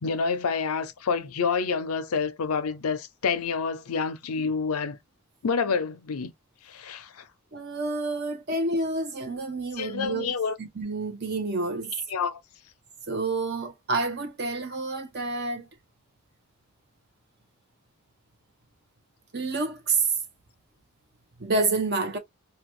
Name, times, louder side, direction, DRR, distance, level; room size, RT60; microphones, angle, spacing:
voice 1, 0.0-5.0 5.4-6.3 6.7-7.3 9.8-10.6 12.1-12.4, left 5 dB, 85° left, 0.6 m, -28 dB
voice 2, 7.5-10.3 10.6-11.9 13.1-15.7 19.3-20.1 21.4-22.2, right 3 dB, 50° right, 0.9 m, -28 dB
2.8 x 2.3 x 3.0 m
head